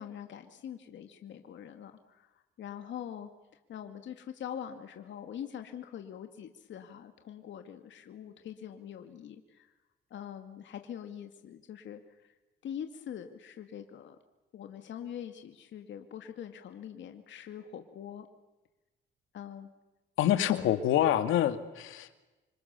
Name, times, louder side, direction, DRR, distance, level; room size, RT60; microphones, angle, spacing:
voice 1, 0.0-3.3 3.7-9.7 10.1-12.3 12.6-14.2 14.5-18.3 19.3-19.7 20.4-20.5, left 9 dB, 70° left, 6 dB, 2.3 m, -43 dB
voice 2, 20.2-22.2, left 11 dB, 85° left, 10 dB, 2.2 m, -27 dB
28.5 x 25.5 x 7.0 m, 1.1 s
cardioid pair, 90°, 20 cm